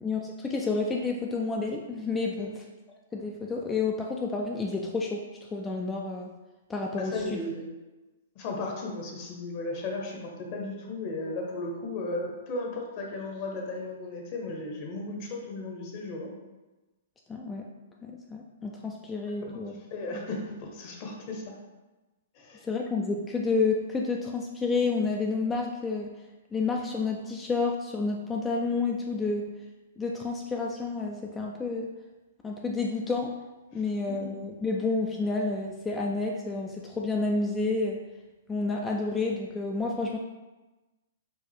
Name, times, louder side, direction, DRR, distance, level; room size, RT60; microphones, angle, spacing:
voice 1, 0.0-2.5 3.1-5.2 5.5-6.3 6.7-7.4 17.3-17.7 18.0-19.7 20.1-20.2 22.6-26.1 26.5-29.4 30.0-31.9 32.4-33.3 33.7-38.0 38.5-40.2, left 3 dB, 15° left, 0 dB, 0.3 m, -30 dB
voice 2, 7.0-7.7 8.3-16.3 19.5-19.6 19.9-21.5 22.3-22.6 29.2-29.3 33.7-33.8, left 2 dB, 45° left, 0 dB, 0.9 m, -35 dB
4.5 x 2.4 x 3.4 m, 1.1 s
hypercardioid pair, 125°, 0 cm